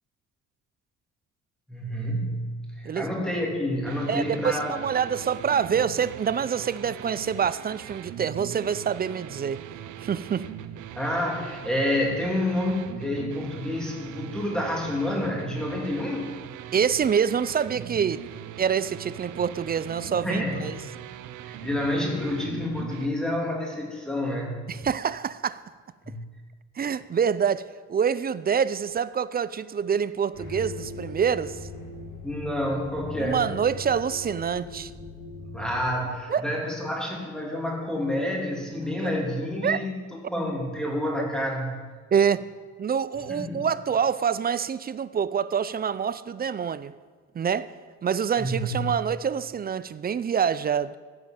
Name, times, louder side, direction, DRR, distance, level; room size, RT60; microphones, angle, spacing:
voice 1, 1.7-4.7 11.0-16.3 20.2-20.7 21.4-24.7 26.0-26.2 32.2-33.5 35.5-39.9 40.3-41.8 43.3-43.7 48.4-48.9, left 1 dB, ahead, 3.1 m, -28 dB
sound 1, 3.9-23.1, right 10 dB, 85° right, 0.6 m, -40 dB
voice 2, 4.1-9.6 10.0-10.4 16.7-18.2 18.6-20.8 24.7-25.6 26.8-31.7 33.2-34.9 36.3-36.5 39.0-39.1 39.6-39.9 42.1-42.5 42.8-46.9 47.3-47.7 48.0-50.9, right 7 dB, 30° right, 0.4 m, -26 dB
sound 2, 30.3-35.9, left 3 dB, 75° left, 2.1 m, -40 dB
15.5 x 5.3 x 7.4 m
cardioid pair, 90°, 30 cm